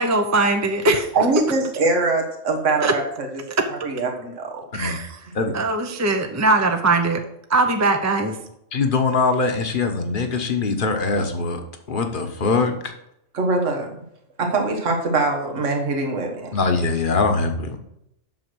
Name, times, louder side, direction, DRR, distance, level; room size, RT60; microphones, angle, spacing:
voice 1, 0.0-1.1 2.8-2.9 4.7-5.2 5.5-7.2 7.5-8.4, right 2 dB, 15° right, 5 dB, 0.7 m, -20 dB
voice 2, 1.1-3.4 3.8-4.6 13.3-13.9 14.4-16.5, right 3 dB, 75° right, 2 dB, 1.8 m, -22 dB
voice 3, 8.7-11.6 11.9-12.7 16.5-17.8, left 4 dB, 45° left, 5 dB, 1.3 m, -22 dB
8.0 x 6.4 x 6.2 m, 0.79 s
omnidirectional pair, 1.3 m